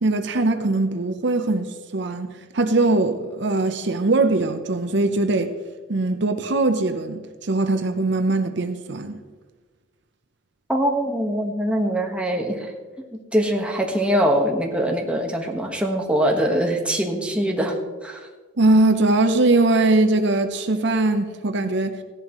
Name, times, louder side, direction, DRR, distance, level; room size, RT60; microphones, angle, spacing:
voice 1, 0.0-5.5 5.9-9.2 18.6-22.0, right 2 dB, 65° right, 0.7 m, -21 dB
voice 2, 10.7-12.7 13.0-13.1 13.3-17.8 18.0-18.2, equal, 5° right, 1.4 m, -23 dB
16.0 x 11.0 x 3.1 m
head